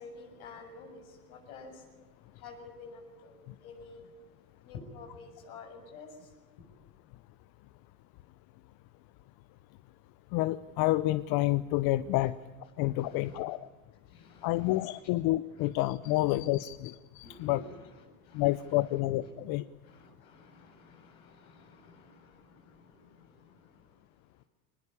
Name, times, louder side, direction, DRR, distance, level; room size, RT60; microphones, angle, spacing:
voice 1, 0.0-6.6 12.9-13.4 14.0-15.1 15.5-15.7 16.0-16.2 17.2-19.3 19.8-24.5, left 3 dB, 75° left, 3 dB, 7.4 m, -51 dB
voice 2, 10.3-12.3 12.8-13.7 14.4-17.6 18.3-19.6, left 17 dB, 55° left, 15 dB, 0.9 m, -29 dB
23.5 x 20.5 x 8.4 m, 1.3 s
hypercardioid pair, 90°, 44 cm